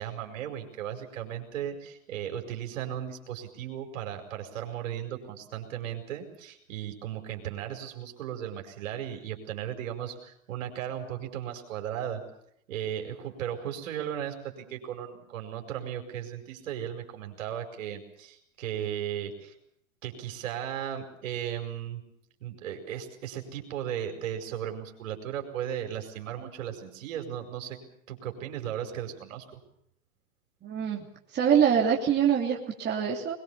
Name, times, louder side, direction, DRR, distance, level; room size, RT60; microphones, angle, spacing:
voice 1, 0.0-12.2 12.7-19.6 20.0-22.0 22.4-27.8 28.1-29.6, right 10 dB, 65° right, 4 dB, 5.2 m, -36 dB
voice 2, 30.6-31.0 31.3-33.3, right 8 dB, 25° right, -1 dB, 3.2 m, -24 dB
22.0 x 22.0 x 7.1 m, 0.70 s
hypercardioid pair, 115°, 42 cm